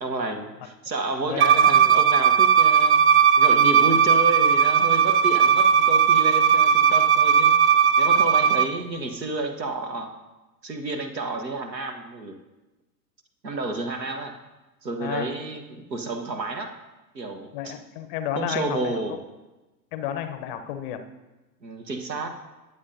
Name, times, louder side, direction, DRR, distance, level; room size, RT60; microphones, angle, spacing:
voice 1, 0.0-3.0 3.4-7.6 8.0-10.1 10.6-12.3 13.4-14.3 14.8-16.7 17.1-17.8 18.3-19.2 21.6-22.3, right 2 dB, 80° right, 6 dB, 1.2 m, -30 dB
voice 2, 1.3-1.7 15.0-15.3 17.5-19.2 19.9-21.1, left 10 dB, 35° left, 10 dB, 0.6 m, -32 dB
Bowed string instrument, 1.4-8.7, right 7 dB, 40° right, 0.5 m, -17 dB
19.0 x 7.3 x 2.7 m, 1.1 s
figure-of-eight pair, 95°, 50 cm